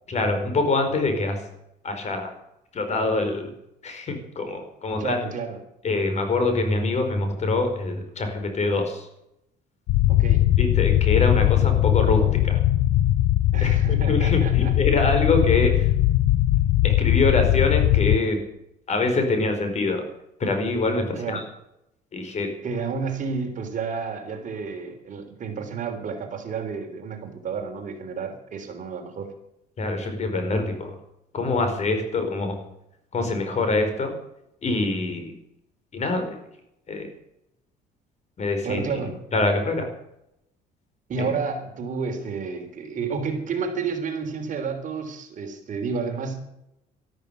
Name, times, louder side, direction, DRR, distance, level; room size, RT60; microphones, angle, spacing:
voice 1, 0.1-1.4 1.8-2.3 2.7-3.5 3.8-5.2 5.8-9.1 10.6-12.6 13.6-15.9 16.8-18.4 18.9-20.1 20.4-21.4 22.1-22.5 29.8-30.9 31.3-32.6 33.1-34.1 34.6-35.3 35.9-36.4 36.9-37.1 38.4-38.8 39.3-39.9 41.2-41.3, left 3 dB, 40° left, 6 dB, 4.8 m, -24 dB
voice 2, 5.0-5.6 10.1-10.4 13.5-14.7 15.1-15.4 21.2-21.5 22.6-29.3 38.6-39.2 41.1-46.4, right 5 dB, 50° right, 5 dB, 3.5 m, -31 dB
sound 1, 9.9-18.2, left 14 dB, 85° left, 0.6 m, -20 dB
13.0 x 12.5 x 8.3 m, 0.81 s
cardioid pair, 110°, 17 cm